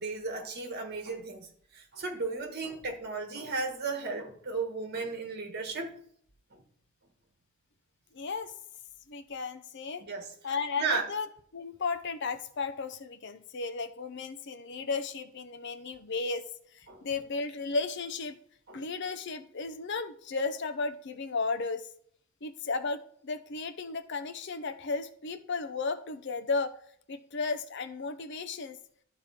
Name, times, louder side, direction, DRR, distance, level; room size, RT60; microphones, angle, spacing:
voice 1, 0.0-5.9 6.5-6.6 10.0-10.3 10.8-11.1 16.9-17.0 18.7-18.8, right 4 dB, 50° right, 4 dB, 1.6 m, -35 dB
voice 2, 8.1-8.5 9.1-10.0 10.4-11.3 11.5-18.3 18.7-21.9 22.4-26.7 27.1-28.8, left 4 dB, 55° left, 11 dB, 0.7 m, -34 dB
12.5 x 4.4 x 4.3 m, 0.62 s
head